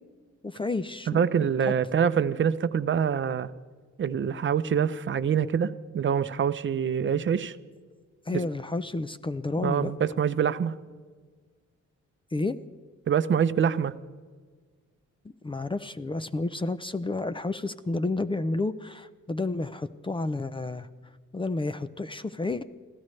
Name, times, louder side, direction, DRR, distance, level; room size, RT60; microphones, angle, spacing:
voice 1, 0.4-1.2 1.6-1.7 8.3-9.9 12.3-12.6 15.4-20.9 21.3-22.6, left 2 dB, 15° left, 12 dB, 0.5 m, -30 dB
voice 2, 1.1-3.5 4.0-7.6 8.3-8.4 9.6-10.7 13.1-13.9, right 7 dB, 40° right, 13 dB, 0.7 m, -25 dB
26.5 x 16.0 x 3.3 m, 1.5 s
cardioid pair, 115°, 31 cm